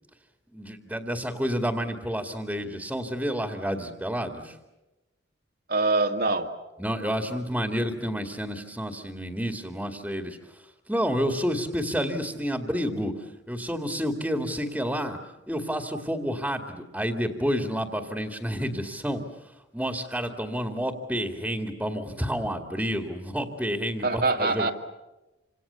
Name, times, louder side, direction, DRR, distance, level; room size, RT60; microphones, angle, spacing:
voice 1, 0.5-4.6 6.8-15.2 15.5-19.2 19.7-24.7, equal, 5° right, 5 dB, 2.2 m, -30 dB
voice 2, 5.7-6.5 24.0-24.7, right 3 dB, 55° right, 4 dB, 2.1 m, -24 dB
28.0 x 27.0 x 7.0 m, 1.0 s
head